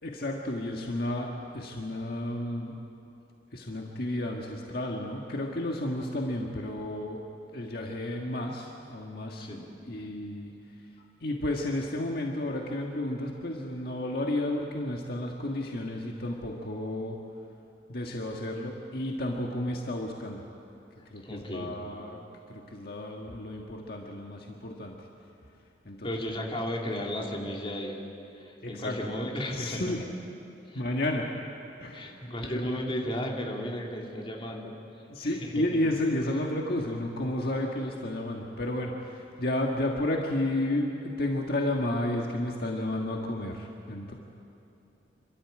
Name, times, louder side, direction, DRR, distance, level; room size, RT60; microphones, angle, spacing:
voice 1, 0.0-2.7 3.5-7.2 7.5-9.5 9.9-10.5 11.2-17.2 17.9-20.5 21.1-22.2 22.5-25.0 25.8-26.2 28.6-29.0 29.5-30.0 30.7-31.3 31.8-32.1 32.4-32.8 35.1-44.1, left 1 dB, 60° left, 0 dB, 1.6 m, -32 dB
voice 2, 21.2-21.7 26.0-28.0 28.4-29.9 30.7-30.8 31.9-34.7 35.2-35.6, equal, 30° left, -1 dB, 2.8 m, -34 dB
28.0 x 13.0 x 8.8 m, 2.9 s
head